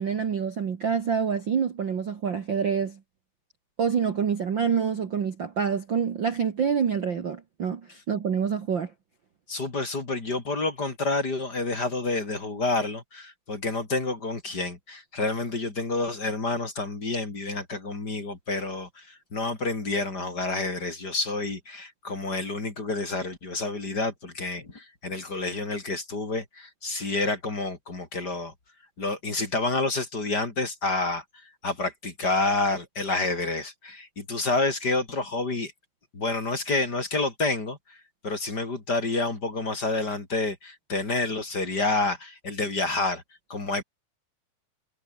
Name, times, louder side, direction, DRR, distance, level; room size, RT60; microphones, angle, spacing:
voice 1, 0.0-3.0 3.8-7.8 8.1-8.9, right 7 dB, 65° right, 1.1 m, -26 dB
voice 2, 9.5-28.5 29.0-35.7 36.1-38.0 38.2-43.2 43.5-43.8, left 3 dB, 25° left, 3.7 m, -29 dB
omnidirectional pair, 4.8 m